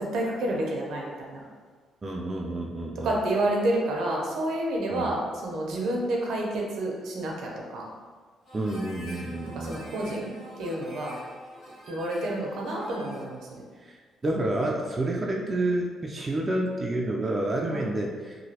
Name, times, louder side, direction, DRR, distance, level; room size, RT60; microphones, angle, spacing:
voice 1, 0.0-1.4 3.0-7.8 9.4-10.3 10.6-11.2 11.9-13.6 17.7-17.9, right 1 dB, 75° right, -1 dB, 0.6 m, -29 dB
voice 2, 2.0-3.2 4.9-5.1 8.5-9.8 13.8-14.0 14.2-18.4, right 1 dB, 30° right, -1 dB, 0.4 m, -29 dB
Harmonica, 8.4-13.4, equal, 55° left, 1.1 m, -46 dB
2.9 x 2.7 x 2.8 m, 1.5 s
cardioid pair, 90°, 0 cm